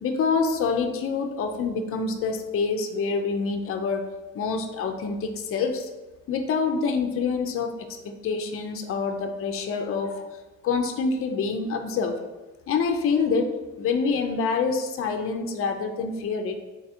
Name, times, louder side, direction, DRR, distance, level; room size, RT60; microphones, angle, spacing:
voice 1, 0.0-4.0 4.3-5.9 6.3-7.7 8.0-10.3 10.6-12.2 12.7-13.5 13.8-16.6, left 5 dB, 45° left, 5 dB, 0.5 m, -26 dB
3.6 x 2.9 x 4.3 m, 1.2 s
cardioid pair, 125°, 30 cm